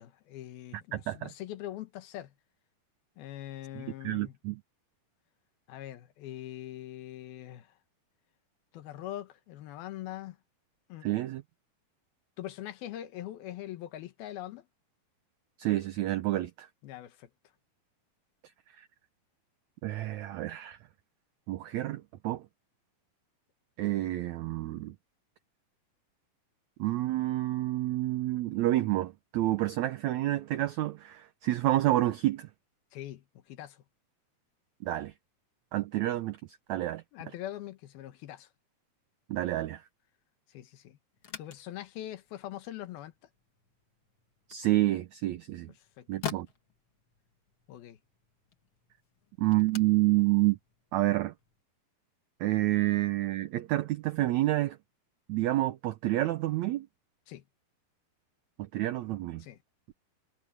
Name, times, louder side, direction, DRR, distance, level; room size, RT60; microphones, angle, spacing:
voice 1, 0.0-2.3 3.2-4.3 5.7-7.7 8.7-10.4 10.9-11.1 12.4-14.7 16.8-17.3 32.9-33.8 37.1-38.5 40.5-41.0 41.4-43.1 46.0-46.1 47.7-48.0 57.3-57.4 59.4-59.6, left 13 dB, 85° left, 3.2 m, -42 dB
voice 2, 0.9-1.3 3.8-4.6 11.0-11.4 15.6-16.7 18.8-18.9 19.8-20.8 21.5-22.4 23.8-24.9 26.8-32.5 34.8-35.1 35.7-36.4 36.7-37.0 39.3-39.8 44.5-45.7 46.1-46.5 49.4-50.6 50.9-51.3 52.4-54.8 55.3-56.9 58.6-59.4, right 16 dB, 85° right, 1.6 m, -29 dB
sound 1, 41.1-51.6, left 8 dB, 45° left, 2.3 m, -47 dB
omnidirectional pair, 4.2 m